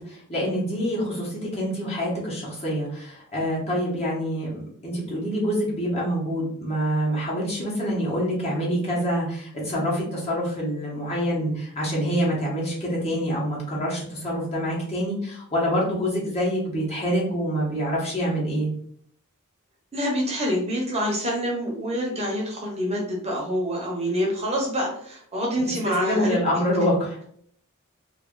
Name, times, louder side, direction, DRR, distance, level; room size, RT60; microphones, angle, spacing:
voice 1, 0.0-18.7 26.1-27.2, equal, 30° left, -5 dB, 1.1 m, -26 dB
voice 2, 19.9-26.4, equal, 30° right, -2 dB, 0.9 m, -26 dB
2.7 x 2.5 x 3.7 m, 0.63 s
head